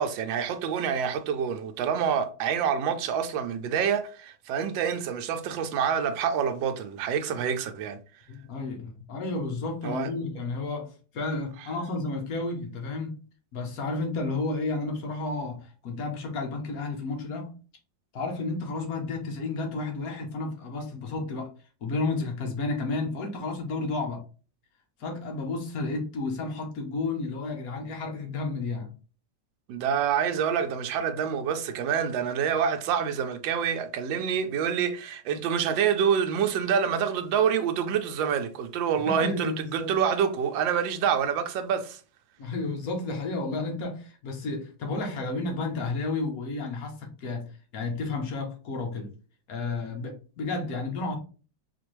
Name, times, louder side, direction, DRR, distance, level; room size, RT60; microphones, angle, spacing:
voice 1, 0.0-8.0 9.8-10.1 29.7-42.0, right 7 dB, 85° right, 1.3 m, -27 dB
voice 2, 8.3-13.2 13.5-17.6 18.1-21.5 21.8-24.2 25.0-28.9 39.1-39.9 42.4-49.1 49.5-51.2, left 3 dB, 60° left, 1.1 m, -32 dB
4.3 x 2.5 x 3.0 m
omnidirectional pair, 2.0 m